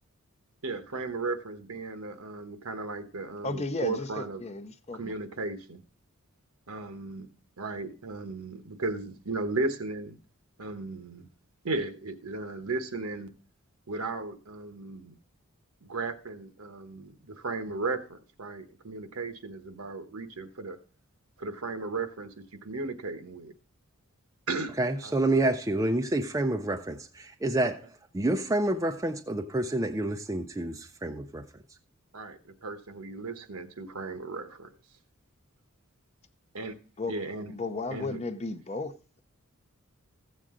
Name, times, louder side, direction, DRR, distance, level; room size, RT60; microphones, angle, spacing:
voice 1, 0.6-4.4 4.9-5.8 6.7-7.3 7.6-10.2 10.6-11.3 11.6-13.3 13.9-15.1 15.8-20.8 21.4-23.5 24.5-24.8 25.0-25.2 32.1-34.7 36.5-36.7 37.1-37.5 37.9-38.2, right 3 dB, 75° right, 1.1 m, -35 dB
voice 2, 3.4-5.1 37.0-37.1 37.5-38.9, left 2 dB, 30° left, 0.6 m, -34 dB
voice 3, 24.8-31.5, right 2 dB, 15° right, 0.4 m, -28 dB
14.5 x 7.6 x 3.7 m
head